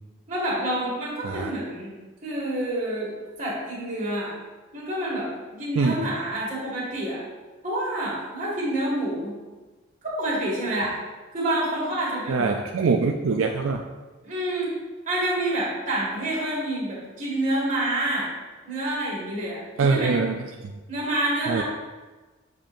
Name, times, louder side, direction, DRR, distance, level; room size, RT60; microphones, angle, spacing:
voice 1, 0.3-2.0 2.2-4.4 4.7-7.2 7.6-9.4 10.0-11.0 11.3-12.6 14.2-14.8 15.1-18.3 18.6-19.6 19.9-20.2 20.9-21.6, right 1 dB, 35° right, -5 dB, 2.1 m, -28 dB
voice 2, 12.3-13.8 19.8-20.3 20.6-20.7 21.5-21.6, right 4 dB, 75° right, 3 dB, 0.4 m, -23 dB
7.6 x 5.2 x 2.6 m, 1.2 s
head